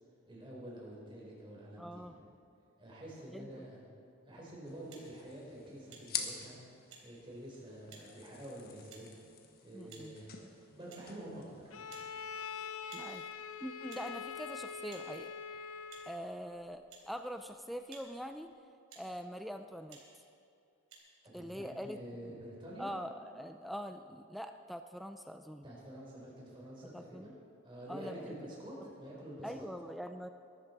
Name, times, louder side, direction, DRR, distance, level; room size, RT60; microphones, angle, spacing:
voice 1, 0.3-2.3 2.8-3.8 4.3-6.6 7.0-9.0 9.6-11.6 21.2-22.9 25.6-27.3 27.6-29.7, right 1 dB, 25° right, -5 dB, 4.6 m, -48 dB
voice 2, 1.8-2.2 3.3-3.7 9.7-10.2 12.9-13.2 13.6-15.3 16.1-18.5 19.0-20.0 21.3-22.0 22.2-22.3 22.8-25.7 26.9-27.3 27.9-28.3 29.4-30.3, equal, ahead, 7 dB, 0.4 m, -43 dB
sound 1, 4.7-12.3, left 7 dB, 45° left, 1.5 m, -47 dB
sound 2, 4.9-5.1 5.9-6.1 6.9-7.1 7.9-8.1 8.9-9.0 9.9-10.1 10.9-11.1 11.9-12.1 12.9-13.1 13.9-14.1 14.9-15.1 15.9-16.1 16.9-17.1 17.9-18.1 18.9-19.1 19.9-20.0 20.9-21.0, right 6 dB, 75° right, 3.4 m, -54 dB
Bowed string instrument, 11.7-16.3, left 6 dB, 85° left, 0.7 m, -44 dB
22.5 x 12.5 x 4.6 m, 2.6 s
head